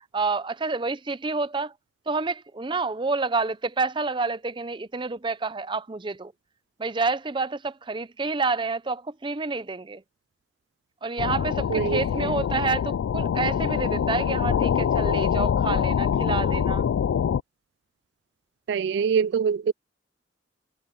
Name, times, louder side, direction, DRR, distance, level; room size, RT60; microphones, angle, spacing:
voice 1, 0.1-1.7 2.1-6.3 6.8-10.0 11.0-16.9, right 4 dB, 25° right, 0.6 m, -28 dB
sound 1, 11.2-17.4, left 8 dB, 90° left, 0.3 m, -24 dB
voice 2, 11.7-12.3 18.7-19.7, right 6 dB, 65° right, 0.3 m, -24 dB
head